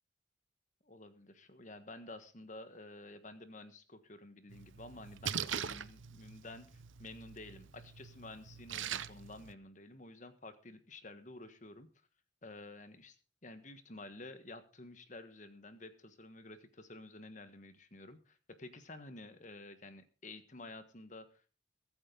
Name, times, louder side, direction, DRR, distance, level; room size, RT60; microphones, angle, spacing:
voice 1, 0.8-11.9 12.4-13.2 13.4-21.5, left 2 dB, 40° left, 10 dB, 1.4 m, -51 dB
Splash splatter, 4.5-9.5, right 8 dB, 75° right, 0.7 m, -43 dB
22.0 x 8.8 x 3.9 m, 0.36 s
head